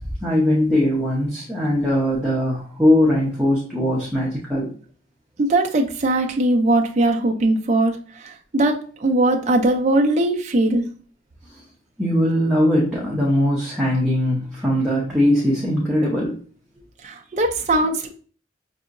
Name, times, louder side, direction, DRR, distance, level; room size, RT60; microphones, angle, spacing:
voice 1, 0.2-4.7 12.0-16.4, left 1 dB, 5° right, -7 dB, 0.7 m, -20 dB
voice 2, 5.4-10.9 17.0-18.1, right 2 dB, 35° right, 2 dB, 0.4 m, -20 dB
5.4 x 2.8 x 2.5 m, 0.43 s
head